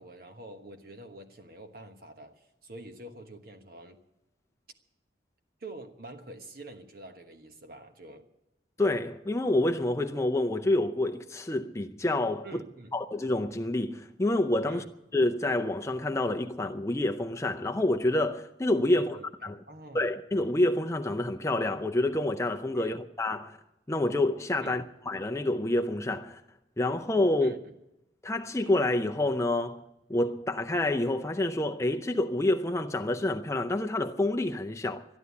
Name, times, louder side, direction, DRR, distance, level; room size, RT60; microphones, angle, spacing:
voice 1, 0.0-4.0 5.6-8.3 12.4-13.0 14.7-14.9 18.9-20.1 22.7-23.0 24.6-24.8 27.4-27.7, right 1 dB, 50° right, 1.3 m, -46 dB
voice 2, 8.8-12.6 12.9-14.8 15.1-19.2 19.4-19.6 19.9-23.6 23.9-26.4 26.8-27.6 28.2-29.8 30.1-35.1, left 1 dB, 15° left, 0.5 m, -28 dB
13.0 x 11.5 x 8.3 m
head